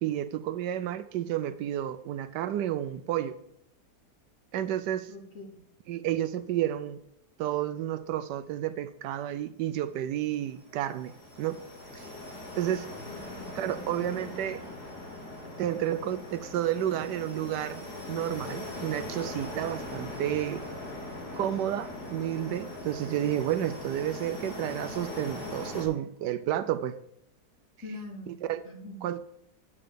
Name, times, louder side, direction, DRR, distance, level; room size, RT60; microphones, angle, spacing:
voice 1, 0.0-3.4 4.5-5.1 5.9-7.0 7.4-11.6 11.9-12.1 12.6-12.9 13.6-14.6 15.6-20.6 21.3-27.0 28.4-28.6 29.0-29.2, right 11 dB, 80° right, 12 dB, 1.2 m, -31 dB
voice 2, 5.1-5.6 13.1-13.5 13.7-14.6 27.8-28.4 28.6-29.0, left 1 dB, 45° left, -2 dB, 3.4 m, -44 dB
sound 1, 10.2-25.8, left 2 dB, 65° left, 4.1 m, -40 dB
9.7 x 8.6 x 5.1 m, 0.75 s
omnidirectional pair, 1.8 m